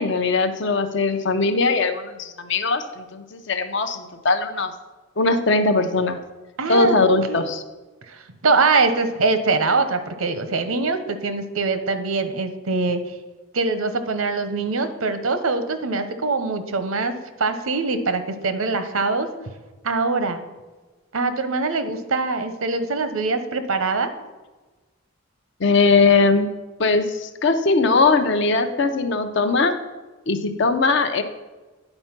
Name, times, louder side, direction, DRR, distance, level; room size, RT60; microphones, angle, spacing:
voice 1, 0.0-4.7 5.2-6.2 6.7-7.6 25.6-26.5 26.8-29.7 30.3-31.2, left 3 dB, 60° left, 8 dB, 0.7 m, -20 dB
voice 2, 6.6-7.0 7.3-7.4 8.1-13.0 13.5-19.3 19.8-20.4 21.1-24.1, right 3 dB, 85° right, 10 dB, 0.8 m, -23 dB
9.9 x 4.5 x 5.8 m, 1.2 s
head